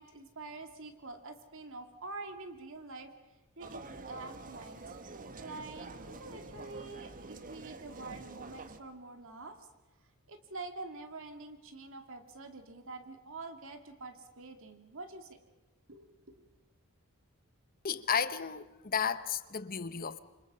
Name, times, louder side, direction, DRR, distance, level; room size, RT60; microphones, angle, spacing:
voice 1, 0.0-3.1 3.6-4.9 5.4-9.7 10.3-15.4 15.9-16.5, right 3 dB, 60° right, 2.4 m, -46 dB
sound 1, 3.6-8.8, right 3 dB, 40° right, 1.3 m, -47 dB
voice 2, 17.8-20.2, left 6 dB, 40° left, 0.9 m, -33 dB
28.0 x 25.5 x 5.6 m
head